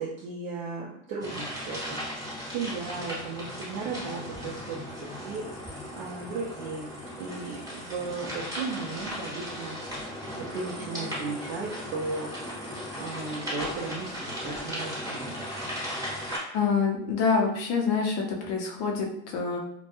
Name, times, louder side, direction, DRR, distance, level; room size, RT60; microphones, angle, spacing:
voice 1, 0.0-4.9 5.2-5.4 6.0-6.9 7.2-9.8 10.4-12.5 13.0-15.3, right 4 dB, 50° right, -3 dB, 0.5 m, -36 dB
sound 1, 1.2-16.4, equal, 10° right, 0.7 m, -37 dB
voice 2, 16.5-19.6, left 5 dB, 40° left, 1 dB, 0.6 m, -26 dB
2.2 x 2.1 x 2.8 m, 0.75 s
supercardioid pair, 130°, 41 cm